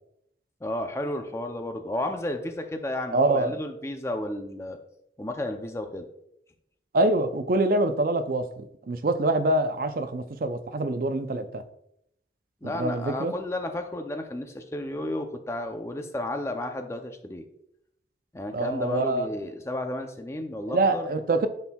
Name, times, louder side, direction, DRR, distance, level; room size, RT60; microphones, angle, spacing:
voice 1, 0.6-4.8 5.2-6.1 12.6-17.4 18.3-21.1, left 1 dB, 15° left, 6 dB, 0.5 m, -32 dB
voice 2, 3.1-3.5 6.9-11.6 12.6-13.3 18.5-19.3 20.7-21.5, right 2 dB, 50° right, 9 dB, 0.5 m, -25 dB
10.5 x 4.4 x 2.3 m, 0.76 s
head